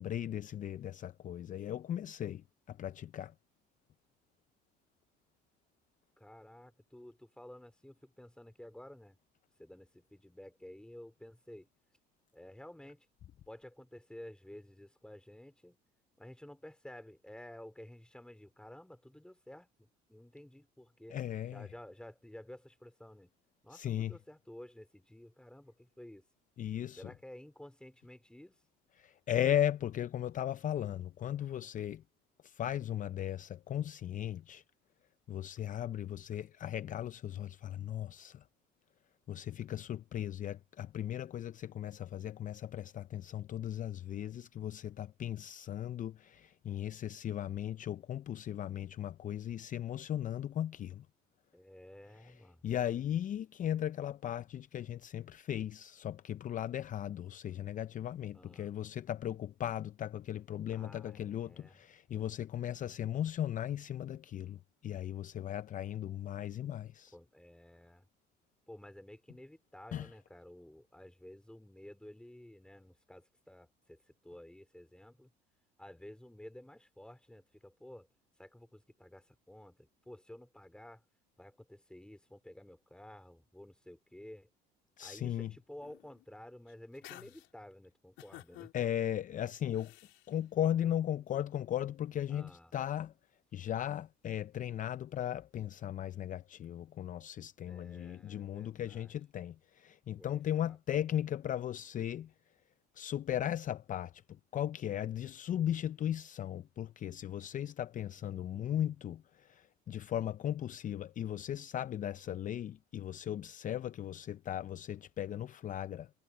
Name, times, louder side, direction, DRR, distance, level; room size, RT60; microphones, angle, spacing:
voice 1, 0.0-3.3 21.1-21.7 23.7-24.1 26.6-27.1 29.0-32.0 32.4-34.6 35.3-38.4 39.3-51.1 52.2-52.3 52.6-67.1 69.9-70.1 85.0-85.5 88.7-89.9 90.3-93.1 93.5-102.3 102.9-104.2 104.5-116.1, left 11 dB, 40° left, 0.6 m, -37 dB
voice 2, 6.2-9.2 9.6-11.7 12.3-13.1 13.5-15.8 16.2-21.2 21.5-23.3 23.6-26.3 27.0-28.6 51.5-52.7 58.3-58.7 60.7-61.8 67.1-68.1 68.7-75.3 75.8-78.1 78.4-81.0 81.4-84.5 85.0-88.9 92.3-92.7 97.6-99.2 100.2-100.8, left 1 dB, 5° left, 3.9 m, -53 dB
sound 1, 85.8-86.2 86.7-87.5 88.2-88.7 89.7-90.3, left 17 dB, 65° left, 3.8 m, -53 dB
supercardioid pair, 80°, 20 cm